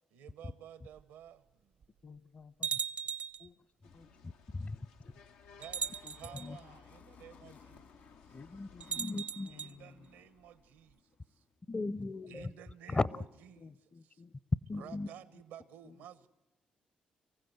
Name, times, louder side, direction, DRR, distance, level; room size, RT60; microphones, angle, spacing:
voice 1, 0.0-1.8 5.6-7.9 8.3-8.4 9.5-11.0 11.3-11.4 12.3-13.8 14.0-14.2 14.8-16.3, right 10 dB, 85° right, 1.0 m, -53 dB
sound 1, 1.0-1.1 1.8-1.9 2.6-3.5 4.6-4.7 5.6-6.5 8.8-9.7, right 7 dB, 60° right, 0.6 m, -38 dB
voice 2, 2.0-2.7 3.4-3.7 3.9-4.1 4.7-5.2 6.0-6.1 6.4-6.7 7.4-7.6 8.3-10.1 12.3-12.5 13.6-14.3 14.7-15.4 15.8-16.0, left 4 dB, 50° left, 1.1 m, -55 dB
sound 2, 3.8-9.1, left 6 dB, 90° left, 0.7 m, -59 dB
voice 3, 4.0-4.8 6.3-6.6 8.5-8.7 9.0-9.5 11.7-12.5 12.9-13.2 14.7-15.1, left 3 dB, 30° left, 0.6 m, -36 dB
sound 3, 5.2-11.6, left 5 dB, 70° left, 2.2 m, -62 dB
24.5 x 15.0 x 8.0 m
hypercardioid pair, 45°, 3 cm